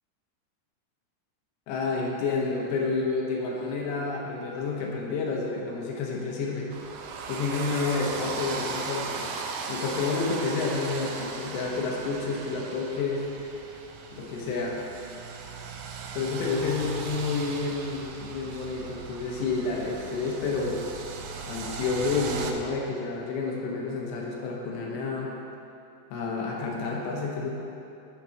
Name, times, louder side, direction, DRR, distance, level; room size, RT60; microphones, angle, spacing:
voice 1, 1.7-6.7 7.3-9.3 9.7-13.3 14.1-14.8 16.1-20.8 21.5-25.3 26.1-27.5, left 4 dB, 75° left, -2 dB, 2.8 m, -29 dB
sound 1, 6.7-22.5, right 5 dB, 80° right, 2.6 m, -37 dB
7.3 x 6.5 x 5.7 m, 2.7 s
omnidirectional pair, 5.5 m